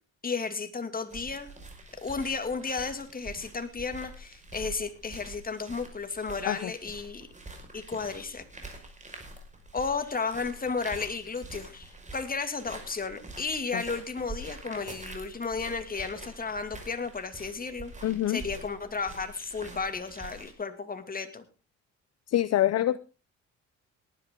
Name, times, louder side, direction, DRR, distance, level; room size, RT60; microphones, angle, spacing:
voice 1, 0.2-1.5 2.0-7.3 7.7-8.4 9.7-17.9 18.3-21.4, left 4 dB, 30° left, 2.5 m, -33 dB
sound 1, 1.1-20.5, right 2 dB, 25° right, 5.4 m, -46 dB
voice 2, 18.0-18.4 22.3-23.0, left 13 dB, 55° left, 0.6 m, -26 dB
18.0 x 12.0 x 3.8 m
cardioid pair, 90°, 30 cm